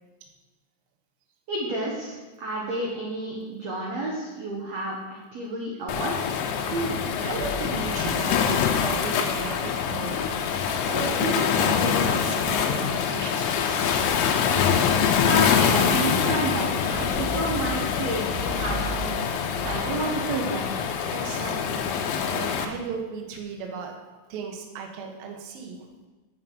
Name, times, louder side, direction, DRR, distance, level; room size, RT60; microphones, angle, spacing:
voice 1, 1.5-6.2 15.2-19.2 19.6-20.9, right 1 dB, 80° right, -3 dB, 1.5 m, -30 dB
Waves surf, 5.9-22.7, left 7 dB, 90° left, 3.3 m, -25 dB
voice 2, 6.6-13.9 21.1-24.0 24.3-25.9, right 5 dB, 65° right, 2 dB, 2.6 m, -35 dB
sound 1, 7.0-11.1 14.4-19.7, equal, 60° left, 1.2 m, -39 dB
7.8 x 7.5 x 7.6 m, 1.2 s
omnidirectional pair, 5.7 m